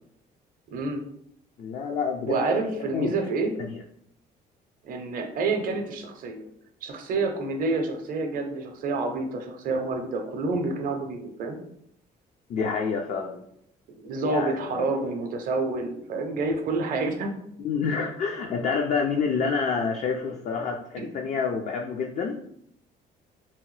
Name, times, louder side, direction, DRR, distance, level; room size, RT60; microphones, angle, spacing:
voice 1, 0.7-1.0 2.2-3.6 4.8-6.4 6.8-11.6 13.9-17.3 20.6-20.7 21.0-21.1, right 3 dB, 55° right, 4 dB, 0.5 m, -28 dB
voice 2, 1.6-2.6 2.9-3.1 3.6-3.7 12.5-13.4 14.2-14.9 17.6-22.4, left 5 dB, 45° left, 2 dB, 0.4 m, -28 dB
2.8 x 2.1 x 3.1 m, 0.71 s
cardioid pair, 110°, 17 cm